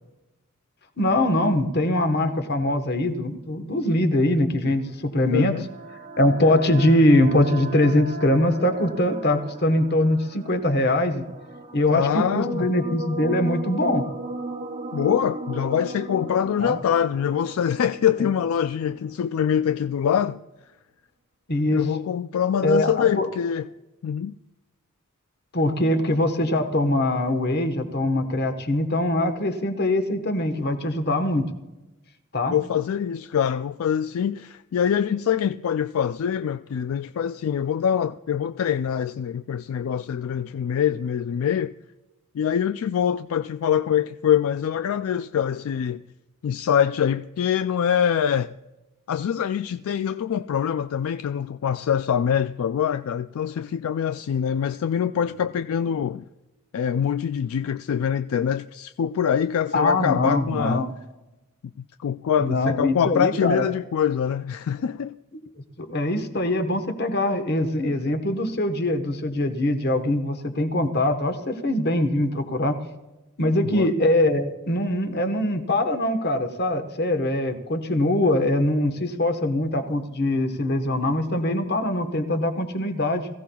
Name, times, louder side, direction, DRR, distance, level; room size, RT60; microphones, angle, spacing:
voice 1, 1.0-5.5 6.2-11.3 11.7-14.0 16.6-16.8 21.5-21.8 22.6-23.3 25.5-31.5 32.3-32.5 59.7-60.9 62.4-63.7 65.8-72.8 73.4-83.3, left 1 dB, 45° left, 1.2 m, -22 dB
sound 1, 4.9-19.0, right 2 dB, 35° right, 0.9 m, -36 dB
voice 2, 5.3-5.7 11.9-12.7 14.9-20.4 21.7-23.7 24.0-24.3 32.5-41.7 42.3-46.0 46.4-48.5 49.1-56.2 56.7-60.8 61.8-65.1 73.6-73.9, left 8 dB, 70° left, 0.3 m, -24 dB
21.5 x 15.5 x 2.3 m
head